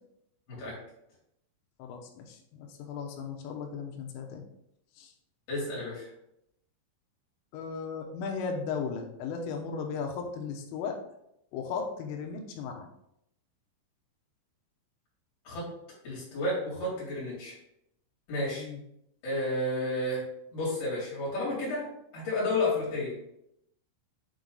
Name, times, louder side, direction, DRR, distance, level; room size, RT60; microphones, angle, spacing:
voice 1, 1.8-4.4 5.0-5.1 7.5-11.0 11.5-12.9 18.6-18.8, left 5 dB, 80° left, 2 dB, 3.4 m, -36 dB
voice 2, 5.5-6.1 15.5-15.7 16.0-17.5 18.3-18.6 19.2-20.2 20.5-21.9 22.1-23.1, left 2 dB, 50° left, -7 dB, 4.4 m, -31 dB
8.8 x 3.9 x 3.9 m, 0.78 s
omnidirectional pair, 5.9 m